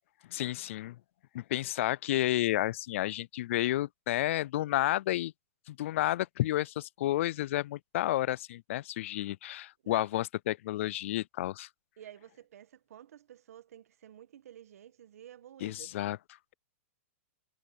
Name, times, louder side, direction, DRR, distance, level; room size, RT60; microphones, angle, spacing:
voice 1, 0.3-1.0 1.3-5.3 5.7-11.7 15.6-16.2, left 15 dB, 55° left, 0.4 m, -31 dB
voice 2, 12.0-15.9, right 11 dB, 75° right, 1.9 m, -51 dB
hypercardioid pair, 150°, 8 cm